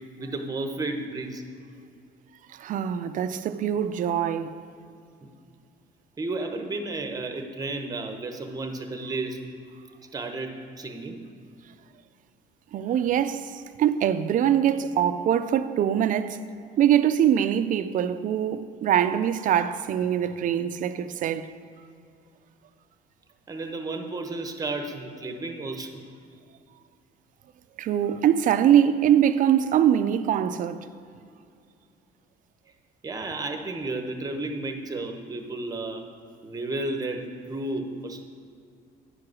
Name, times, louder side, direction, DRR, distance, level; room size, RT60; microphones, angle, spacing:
voice 1, 0.2-1.5 5.2-5.3 6.2-9.4 10.1-11.2 23.5-26.0 33.0-36.1 36.4-38.2, right 2 dB, 20° right, 0.9 m, -32 dB
voice 2, 2.5-4.6 12.7-16.4 16.8-21.5 27.8-30.9, right 10 dB, 50° right, 0.4 m, -23 dB
10.5 x 4.8 x 6.2 m
cardioid pair, 110°, 17 cm